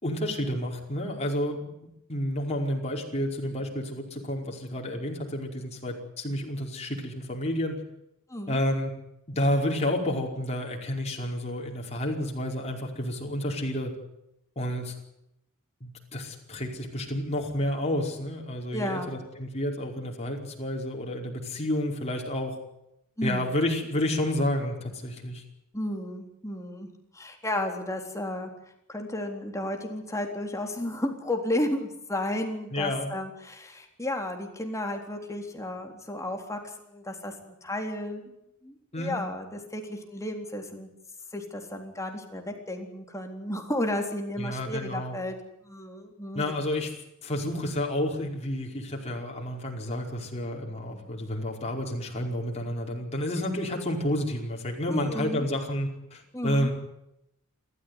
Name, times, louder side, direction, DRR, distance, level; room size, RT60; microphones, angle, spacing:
voice 1, 0.0-1.7 2.1-7.8 8.5-8.9 9.3-13.9 14.5-14.9 15.8-22.6 23.2-25.4 32.7-33.1 38.9-39.2 44.4-45.2 46.3-46.9 47.2-56.7, left 1 dB, 30° left, 0 dB, 5.1 m, -30 dB
voice 2, 18.7-19.1 23.2-23.5 25.7-26.9 27.1-28.5 28.9-38.3 38.6-40.9 41.3-45.4 45.6-46.4 54.9-55.5 56.3-56.7, left 1 dB, 15° left, 3 dB, 3.8 m, -33 dB
28.5 x 14.0 x 9.8 m, 0.82 s
head